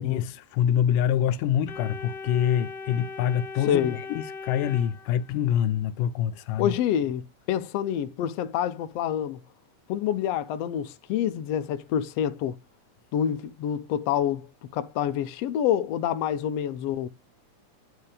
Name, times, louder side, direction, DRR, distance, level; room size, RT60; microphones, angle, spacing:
voice 1, 0.0-6.8, left 10 dB, 90° left, 2.3 m, -26 dB
Organ, 1.7-5.6, left 4 dB, 45° left, 1.7 m, -39 dB
voice 2, 3.7-4.0 6.6-9.4 9.9-12.6 13.1-17.1, left 10 dB, 75° left, 1.6 m, -27 dB
9.5 x 4.8 x 5.0 m
omnidirectional pair, 3.7 m